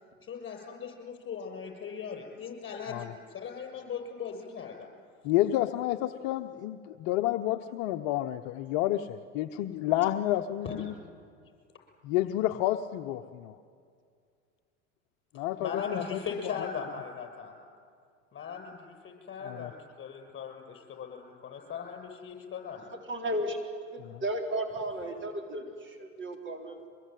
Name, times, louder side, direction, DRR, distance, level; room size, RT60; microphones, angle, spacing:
voice 1, 0.2-4.9 10.6-10.8 15.3-17.5 18.3-22.9, left 6 dB, 30° left, 4 dB, 7.3 m, -39 dB
voice 2, 5.2-10.9 12.0-13.6 15.3-16.5 19.5-19.7 24.0-24.2, left 14 dB, 55° left, 7 dB, 1.0 m, -30 dB
voice 3, 23.1-23.6 23.9-26.9, right 1 dB, 30° right, 3 dB, 3.9 m, -34 dB
24.5 x 21.0 x 9.3 m, 2.2 s
hypercardioid pair, 95°, 38 cm